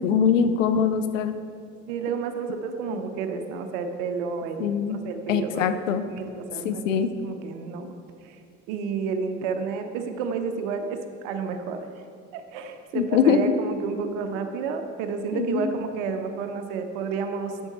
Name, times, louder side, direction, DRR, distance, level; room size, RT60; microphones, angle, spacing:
voice 1, 0.0-1.3 2.9-3.0 4.6-5.0 5.3-6.0 6.6-7.1 12.9-13.4 15.3-15.7, left 7 dB, 85° left, 10 dB, 0.5 m, -23 dB
voice 2, 1.9-5.7 6.1-7.9 8.2-8.4 8.7-11.9 12.3-17.7, right 5 dB, 70° right, 7 dB, 0.7 m, -31 dB
7.9 x 6.3 x 4.2 m, 2.3 s
figure-of-eight pair, 50°, 37 cm